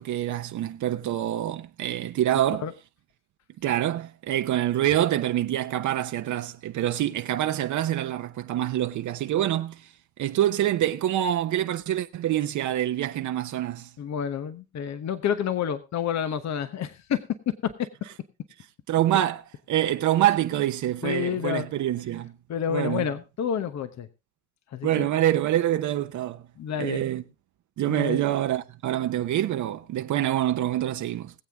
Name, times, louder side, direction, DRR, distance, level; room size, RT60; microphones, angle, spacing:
voice 1, 0.0-2.7 3.6-9.8 10.2-13.9 18.9-22.3 22.7-23.0 24.8-26.4 26.8-27.2 27.8-31.3, right 12 dB, 75° right, 0.9 m, -26 dB
voice 2, 14.0-17.2 17.6-17.7 21.0-21.7 22.5-24.1 24.7-25.1 26.6-27.1 27.9-28.2, left 8 dB, 65° left, 1.1 m, -29 dB
21.0 x 7.9 x 3.5 m
cardioid pair, 90°, 30 cm